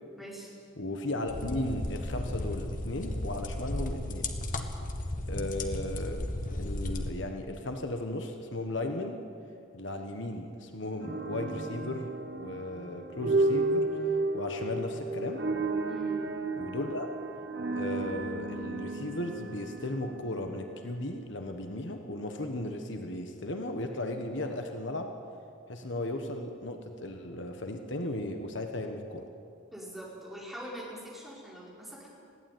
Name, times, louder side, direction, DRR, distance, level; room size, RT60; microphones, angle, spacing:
voice 1, 0.2-0.5 15.9-16.2 29.7-32.1, equal, ahead, -6 dB, 5.0 m, -43 dB
voice 2, 0.8-4.3 5.3-6.3 6.5-9.2 9.7-13.9 14.3-15.4 16.6-17.1 17.7-25.1 25.7-29.3, left 1 dB, 65° left, 5 dB, 1.4 m, -36 dB
sound 1, 1.3-7.1, left 1 dB, 40° left, 1.4 m, -34 dB
sound 2, 11.0-21.1, right 2 dB, 55° right, 1.3 m, -32 dB
20.5 x 16.0 x 9.3 m, 2.4 s
head